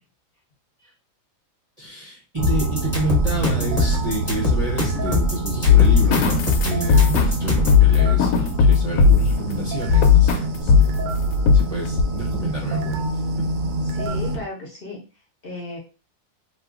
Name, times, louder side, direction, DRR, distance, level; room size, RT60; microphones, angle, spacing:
voice 1, 1.8-10.9 11.5-13.0 13.4-13.5, right 1 dB, 40° right, -2 dB, 0.5 m, -29 dB
sound 1, 2.4-7.8, left 2 dB, 10° left, 1.0 m, -22 dB
sound 2, 2.4-14.4, right 2 dB, 70° right, 0.9 m, -27 dB
sound 3, 5.6-9.4 9.9-10.4 10.7-11.6 12.0-12.1, left 6 dB, 85° left, 1.1 m, -16 dB
voice 2, 13.8-15.0 15.4-15.8, left 2 dB, 45° left, -2 dB, 0.9 m, -34 dB
2.9 x 2.3 x 3.5 m, 0.34 s
omnidirectional pair, 1.6 m